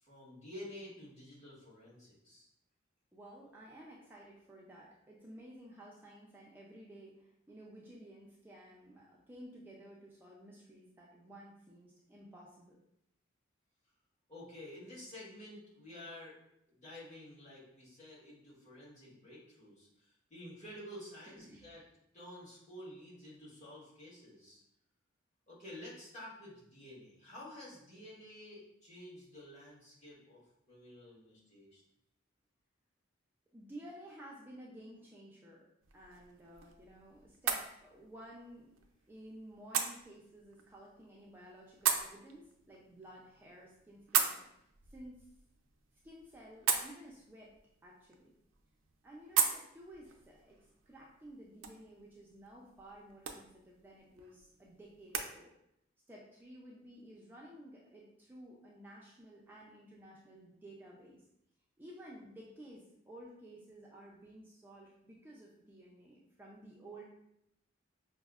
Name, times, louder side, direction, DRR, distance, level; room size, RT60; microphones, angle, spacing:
voice 1, 0.0-2.5 14.3-16.4 16.7-21.8 22.1-24.6 25.5-30.4 30.7-31.8, left 1 dB, 35° left, -7 dB, 1.3 m, -51 dB
voice 2, 3.1-12.8 21.2-21.8 33.5-35.6 35.9-38.8 39.1-45.3 46.0-47.5 47.8-48.3 49.0-50.6 50.9-55.5 56.1-61.2 61.8-67.0, right 1 dB, 10° right, -4 dB, 0.4 m, -54 dB
sound 1, 35.8-55.3, right 7 dB, 90° right, 0.4 m, -40 dB
5.1 x 2.0 x 2.3 m, 0.78 s
head